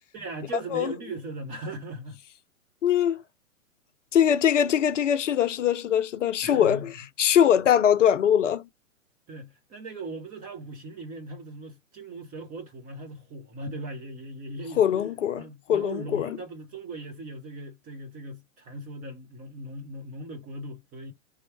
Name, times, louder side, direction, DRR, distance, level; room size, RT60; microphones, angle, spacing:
voice 1, 0.1-2.2 6.4-6.9 9.3-14.8 15.4-21.1, right 2 dB, 20° right, 1.0 m, -39 dB
voice 2, 2.8-3.2 4.1-6.9 7.2-8.6 14.8-15.4 15.7-16.4, left 9 dB, 60° left, 0.6 m, -22 dB
3.5 x 3.1 x 3.2 m
figure-of-eight pair, 120°, 41 cm